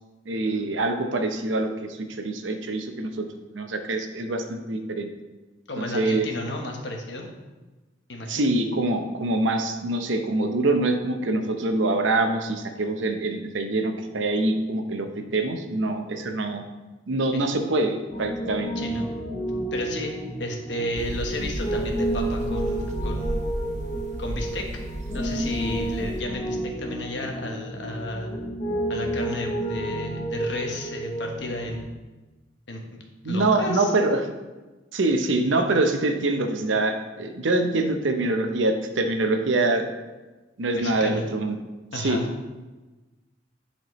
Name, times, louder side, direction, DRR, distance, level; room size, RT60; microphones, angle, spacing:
voice 1, 0.3-3.3 3.5-5.1 5.8-6.3 8.3-16.6 17.1-18.7 33.2-34.3 34.9-39.9 40.6-41.6 41.9-42.2, right 2 dB, 80° right, 6 dB, 0.7 m, -25 dB
voice 2, 5.7-7.3 8.1-8.5 17.3-17.4 18.8-19.1 19.7-20.1 20.4-23.7 24.2-24.7 25.1-28.3 28.9-32.0 32.7-33.0 33.2-33.9 40.7-41.2 41.9-42.2, left 1 dB, 65° left, 2 dB, 1.1 m, -33 dB
Piano, 18.1-31.8, right 1 dB, 25° left, 1.4 m, -31 dB
sound 1, 21.0-26.2, right 1 dB, 40° right, 0.7 m, -33 dB
10.5 x 4.4 x 3.1 m, 1.2 s
head